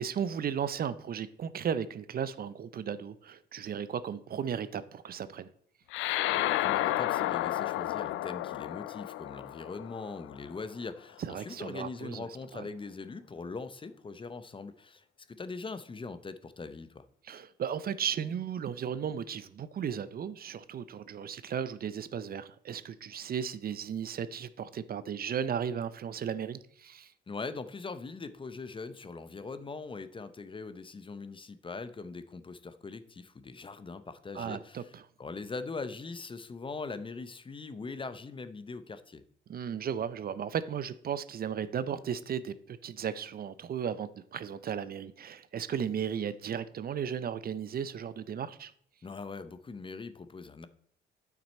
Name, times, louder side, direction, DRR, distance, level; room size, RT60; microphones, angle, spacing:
voice 1, 0.0-5.5 11.2-12.3 12.5-12.7 17.2-27.1 34.3-35.0 39.5-48.7, right 8 dB, 50° right, 0.6 m, -35 dB
sound 1, 5.9-10.7, left 15 dB, 85° left, 0.4 m, -32 dB
voice 2, 6.0-17.0 27.3-39.2 49.0-50.7, left 4 dB, 25° left, 0.6 m, -41 dB
8.7 x 6.0 x 4.2 m
cardioid pair, 90°, 20 cm